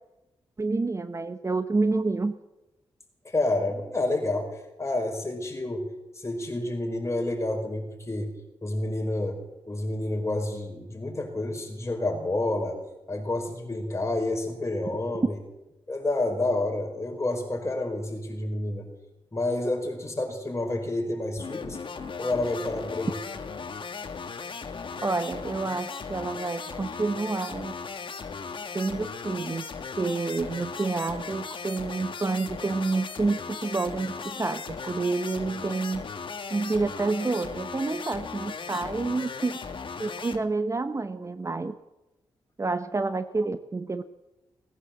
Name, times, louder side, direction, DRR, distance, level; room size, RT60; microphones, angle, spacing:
voice 1, 0.6-2.4 25.0-27.8 28.7-29.6 30.0-36.0 36.5-39.6 40.0-41.7 42.6-44.0, right 3 dB, 30° right, 11 dB, 0.8 m, -28 dB
voice 2, 3.2-5.8 6.1-8.3 8.6-9.4 9.7-12.8 13.1-15.4 15.9-18.9 19.3-21.8 22.2-23.1, left 2 dB, 30° left, 2 dB, 4.8 m, -29 dB
sound 1, 21.4-40.4, left 5 dB, 55° left, 1.5 m, -37 dB
19.0 x 9.8 x 7.7 m, 1.0 s
cardioid pair, 55°, 10 cm